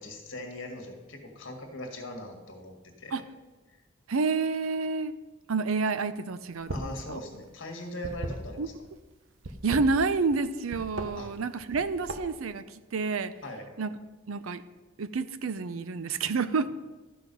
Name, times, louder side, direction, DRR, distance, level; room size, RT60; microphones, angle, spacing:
voice 1, 0.0-3.2 3.7-3.8 6.7-8.7 11.2-11.3 13.4-13.7, left 1 dB, 65° left, 3 dB, 1.8 m, -40 dB
voice 2, 4.1-5.1 5.5-7.2 8.6-8.7 9.6-12.6 12.9-13.3 13.8-13.9 14.3-14.6 15.0-16.7, right 4 dB, 85° right, 13 dB, 0.6 m, -29 dB
sound 1, 6.5-7.0 7.3-8.9 9.4-10.4 10.7-11.1 11.6-12.4, right 2 dB, 70° right, 1.0 m, -36 dB
12.5 x 6.1 x 5.4 m, 1.2 s
head